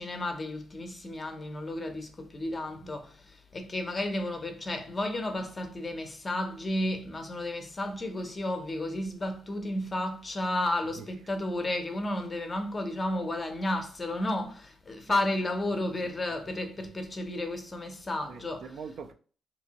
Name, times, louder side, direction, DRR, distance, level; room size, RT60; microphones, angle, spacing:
voice 1, 0.0-18.7, left 1 dB, 20° left, 0.6 m, -32 dB
voice 2, 15.1-15.5 16.0-16.1 16.5-16.9 18.2-19.1, right 5 dB, 55° right, 0.3 m, -44 dB
3.5 x 2.7 x 2.8 m
cardioid pair, 145°, 0 cm